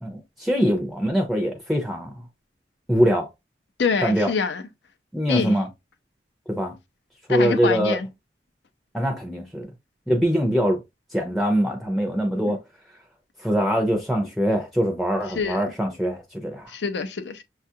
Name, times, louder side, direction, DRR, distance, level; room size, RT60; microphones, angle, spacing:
voice 1, 0.0-2.1 2.9-3.3 4.0-4.3 5.1-5.7 6.5-6.7 7.3-8.0 8.9-9.7 10.1-10.8 11.1-12.6 13.4-16.7, equal, ahead, 0.5 m, -23 dB
voice 2, 3.8-4.6 5.3-5.6 7.3-8.1 12.4-12.6 15.3-15.6 16.7-17.4, left 5 dB, 75° left, 0.6 m, -25 dB
6.5 x 2.4 x 2.7 m
head